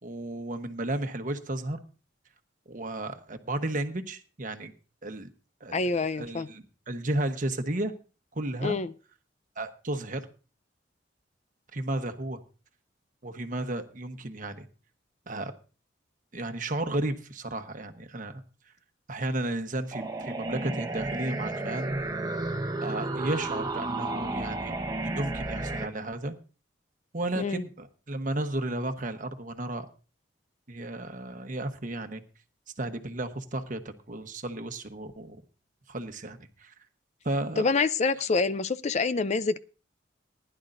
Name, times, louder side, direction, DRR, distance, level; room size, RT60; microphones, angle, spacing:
voice 1, 0.0-1.8 2.7-4.7 5.0-5.3 5.6-7.9 8.3-8.8 9.6-10.3 11.7-12.4 13.2-14.7 15.3-15.5 16.3-18.4 19.1-21.9 22.8-24.7 25.0-26.3 27.1-29.9 30.7-32.2 32.8-35.4 35.9-36.7 37.2-37.6, right 1 dB, 45° right, 1.1 m, -33 dB
voice 2, 5.7-6.5 8.6-8.9 27.4-27.7 37.6-39.6, left 4 dB, 40° left, 0.5 m, -26 dB
sound 1, 19.9-25.9, right 2 dB, 20° right, 1.1 m, -32 dB
20.0 x 11.0 x 2.6 m
head